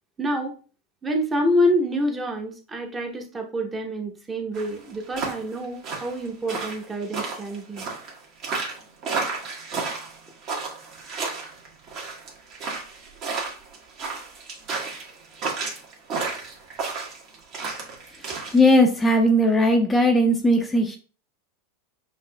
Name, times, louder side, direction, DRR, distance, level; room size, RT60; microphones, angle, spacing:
voice 1, 0.2-0.6 1.0-7.9, equal, 20° right, 3 dB, 0.9 m, -27 dB
sound 1, 4.5-18.6, right 4 dB, 45° right, 1.3 m, -32 dB
voice 2, 18.5-21.0, left 1 dB, 15° left, 3 dB, 0.5 m, -18 dB
5.7 x 2.5 x 2.2 m, 0.37 s
hypercardioid pair, 105°, 0 cm